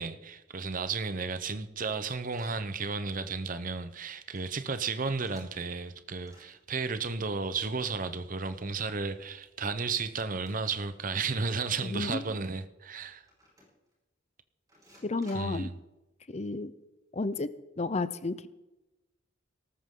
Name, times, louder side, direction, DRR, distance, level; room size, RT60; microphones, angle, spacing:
voice 1, 0.0-13.2 15.3-15.8, right 4 dB, 45° right, 0.8 m, -33 dB
sound 1, 2.3-2.6 3.1-3.3 3.5-3.6 3.8-4.1 4.3-5.9 6.2-6.6 7.9-9.0 9.4-9.5 10.4-10.8 11.0-11.1 11.6-11.9 12.4-12.5 13.3-13.9 14.7-15.7, equal, 20° right, 5.3 m, -59 dB
voice 2, 11.8-12.2 15.0-15.7 16.3-16.7 17.1-18.5, left 3 dB, 35° left, 0.6 m, -32 dB
18.5 x 13.5 x 3.8 m
head